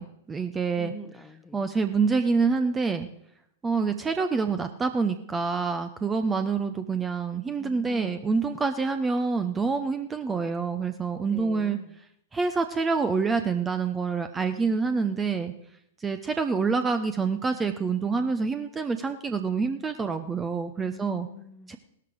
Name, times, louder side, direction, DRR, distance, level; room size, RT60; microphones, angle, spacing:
voice 1, 0.0-0.9 1.5-3.1 3.6-11.8 12.3-15.5 16.0-21.3 21.7-21.8, right 4 dB, 15° right, 9 dB, 0.8 m, -27 dB
voice 2, 0.8-1.7 7.6-8.4 11.2-12.0 20.9-21.7, left 3 dB, 10° left, 9 dB, 1.1 m, -45 dB
17.5 x 13.0 x 4.8 m, 0.73 s
figure-of-eight pair, 100°, 0 cm